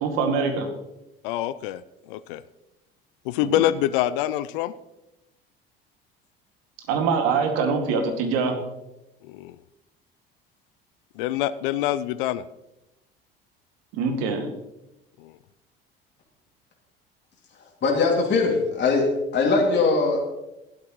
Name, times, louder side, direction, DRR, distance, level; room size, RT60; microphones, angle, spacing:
voice 1, 0.0-0.7 3.4-3.6 6.9-8.5 14.0-14.5, right 5 dB, 60° right, 4 dB, 2.3 m, -24 dB
voice 2, 1.2-2.4 3.2-4.7 9.2-9.6 11.2-12.4 15.2-15.4, left 13 dB, 60° left, 16 dB, 0.6 m, -26 dB
voice 3, 17.8-19.1 19.3-20.2, left 4 dB, 40° left, -1 dB, 2.7 m, -21 dB
16.0 x 12.0 x 3.2 m, 0.94 s
figure-of-eight pair, 60°, 29 cm